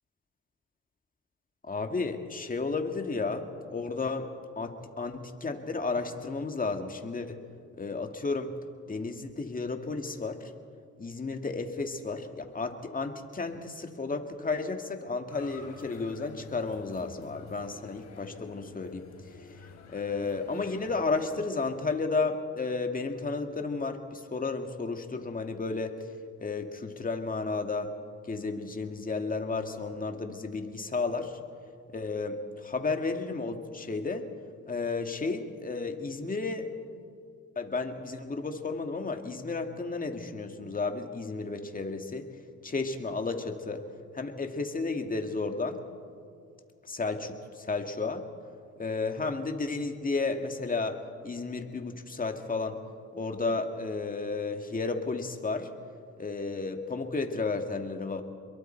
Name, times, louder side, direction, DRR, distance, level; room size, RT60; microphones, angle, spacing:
voice 1, 1.6-4.3 4.6-7.4 7.8-8.5 8.9-10.5 11.0-19.1 19.4-26.0 26.4-27.9 28.2-31.4 31.9-34.3 34.7-36.7 37.6-42.3 42.6-43.8 44.1-45.8 46.8-48.2 48.8-52.8 53.1-55.7 56.2-58.2, left 3 dB, 30° left, 5 dB, 2.1 m, -33 dB
sound 1, 15.3-21.6, left 5 dB, 65° left, 3.5 m, -50 dB
27.5 x 22.5 x 4.6 m, 2.2 s
cardioid pair, 90°, 30 cm